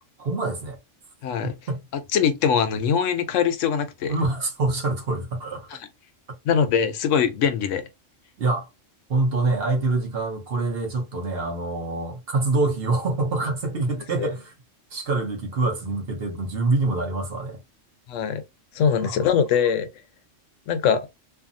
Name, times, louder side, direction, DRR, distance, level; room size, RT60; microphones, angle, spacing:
voice 1, 0.2-0.8 1.4-1.8 4.1-5.7 8.4-8.7 9.1-14.5 14.9-17.6 19.0-19.3, right 3 dB, 55° right, 1.0 m, -25 dB
voice 2, 1.2-1.5 2.1-4.1 5.7-5.8 6.4-7.9 14.2-14.3 18.1-18.4 18.7-19.9 20.7-21.1, left 7 dB, 75° left, 0.9 m, -22 dB
2.6 x 2.5 x 2.5 m
omnidirectional pair, 1.3 m